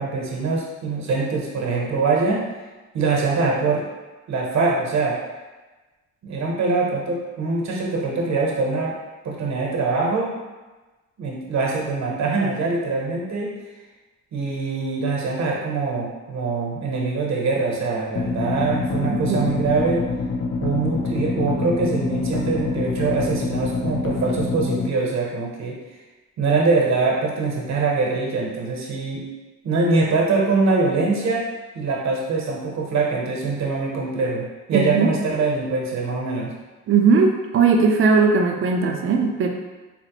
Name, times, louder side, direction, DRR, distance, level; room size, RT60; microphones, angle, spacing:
voice 1, 0.0-2.4 2.9-3.9 4.3-5.2 6.2-8.9 9.2-10.3 11.2-13.5 14.3-20.0 20.6-25.8 26.4-29.2 29.6-31.5 31.7-36.5, right 3 dB, 65° right, -2 dB, 0.9 m, -23 dB
sound 1, 18.1-24.9, left 3 dB, 50° left, 0.5 m, -25 dB
voice 2, 19.0-19.5 34.7-35.1 36.9-39.5, right 4 dB, 45° right, 3 dB, 0.5 m, -18 dB
4.1 x 2.1 x 2.9 m, 1.2 s
cardioid pair, 90°, 30 cm